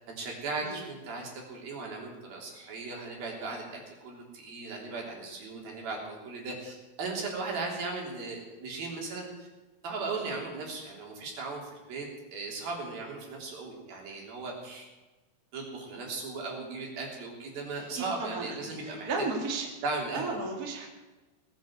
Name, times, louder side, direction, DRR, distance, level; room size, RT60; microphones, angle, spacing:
voice 1, 0.1-9.5 9.8-12.1 12.3-14.9 15.5-19.1 19.8-20.4, right 3 dB, 70° right, -1 dB, 5.2 m, -37 dB
voice 2, 17.9-18.6 18.8-19.7 20.1-20.9, right 3 dB, 30° right, 1 dB, 2.3 m, -34 dB
19.5 x 9.3 x 7.9 m, 1.2 s
omnidirectional pair, 4.4 m